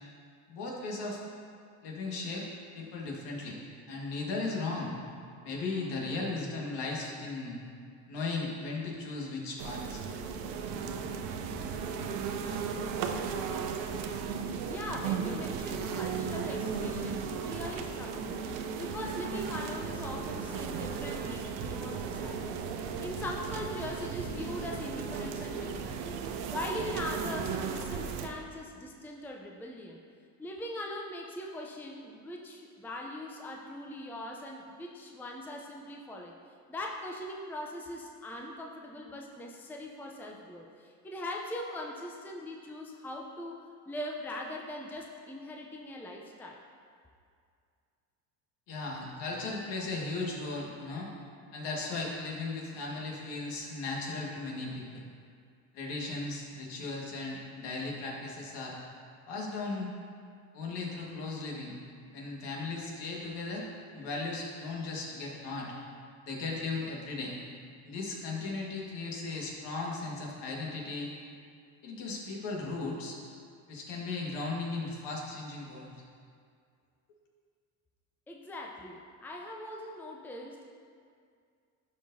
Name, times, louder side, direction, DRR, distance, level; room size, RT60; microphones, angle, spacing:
voice 1, 0.5-1.2 1.8-2.4 2.7-3.6 3.9-4.9 5.4-7.6 8.1-10.0 48.7-51.1 51.5-55.0 55.7-58.8 59.3-59.9 60.5-61.7 62.1-63.6 63.9-65.7 66.2-67.3 67.8-71.1 71.8-73.2 73.7-75.9, left 3 dB, 65° left, -2 dB, 1.8 m, -36 dB
sound 1, 9.6-28.3, right 6 dB, 70° right, 0.7 m, -36 dB
voice 2, 14.6-22.6 23.0-26.2 26.5-30.0 30.4-36.3 36.7-46.6 78.3-80.7, left 1 dB, 5° left, 0 dB, 0.6 m, -41 dB
12.0 x 4.6 x 2.7 m, 2.3 s
hypercardioid pair, 75°, 45 cm